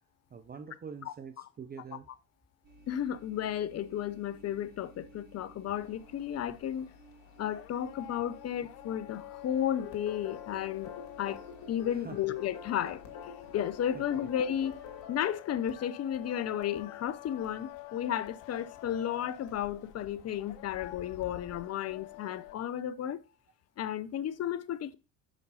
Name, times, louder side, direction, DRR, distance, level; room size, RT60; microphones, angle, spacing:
voice 1, 0.3-2.1 11.9-12.2 13.9-14.0, right 6 dB, 20° right, 0.5 m, -45 dB
sound 1, 2.6-15.0, right 1 dB, 45° right, 4.0 m, -57 dB
voice 2, 2.9-6.9 7.4-10.9 11.2-13.0 13.5-14.7 15.1-23.2 23.8-25.0, left 10 dB, 30° left, 0.6 m, -33 dB
sound 2, 5.8-22.6, left 16 dB, 75° left, 0.7 m, -49 dB
sound 3, 9.8-19.6, left 7 dB, 50° left, 2.3 m, -48 dB
6.2 x 5.4 x 3.9 m
hypercardioid pair, 70°, 49 cm